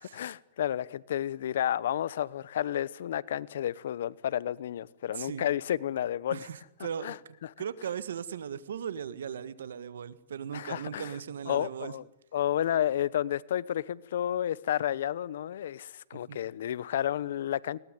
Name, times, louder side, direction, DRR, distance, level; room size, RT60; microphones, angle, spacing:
voice 1, 0.1-6.5 7.0-7.2 7.4-7.5 10.5-11.1 11.5-12.0 12.3-17.8, left 11 dB, 70° left, 0.9 m, -31 dB
voice 2, 6.3-7.1 7.6-11.9 16.1-16.4, right 8 dB, 90° right, 1.6 m, -38 dB
21.0 x 19.0 x 9.4 m
hypercardioid pair, 155°, 0 cm